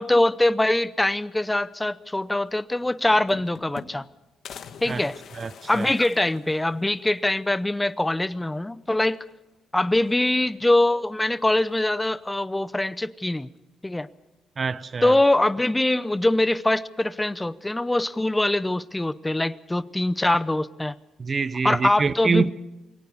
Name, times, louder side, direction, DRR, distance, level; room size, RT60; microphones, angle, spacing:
voice 1, 0.0-4.1 4.8-5.2 5.7-9.2 9.7-13.5 13.8-14.1 15.0-20.9 21.6-22.5, left 1 dB, 10° left, 0.7 m, -23 dB
sound 1, 2.5-2.6 2.8-4.1 4.4-7.0 7.5-7.6 7.8-7.9 9.1-9.5 9.9-10.6 11.7-12.3, left 7 dB, 65° left, 1.8 m, -45 dB
voice 2, 5.4-5.9 14.6-15.2 21.2-22.5, right 5 dB, 35° right, 0.8 m, -26 dB
22.5 x 18.0 x 6.9 m
cardioid pair, 90°, 0 cm